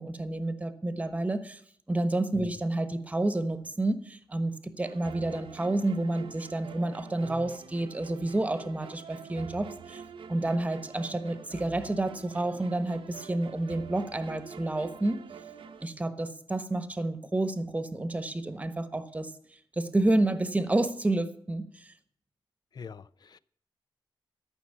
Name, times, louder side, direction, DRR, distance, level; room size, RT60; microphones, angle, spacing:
voice 1, 0.0-1.6 1.9-10.0 10.3-15.2 15.8-19.3 19.8-21.9, right 2 dB, 15° right, 1.1 m, -29 dB
sound 1, 4.8-15.9, right 6 dB, 80° right, 1.0 m, -46 dB
voice 2, 22.7-23.4, left 6 dB, 50° left, 0.5 m, -43 dB
13.5 x 6.2 x 8.4 m
wide cardioid pair, 130°, 9 cm